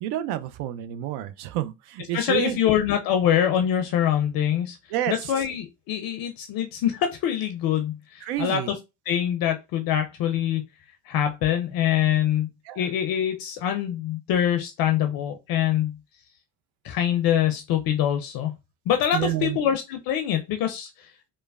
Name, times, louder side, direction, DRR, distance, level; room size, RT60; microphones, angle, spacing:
voice 1, 0.0-2.6 4.9-5.1 8.2-8.7 12.7-12.9 19.1-19.6, right 12 dB, 60° right, 0.5 m, -29 dB
voice 2, 2.1-4.8 5.1-8.6 9.1-10.6 11.1-12.5 12.8-16.0 16.8-18.5 18.9-21.3, left 10 dB, 50° left, 0.5 m, -24 dB
3.0 x 2.1 x 2.3 m
hypercardioid pair, 65°, 45 cm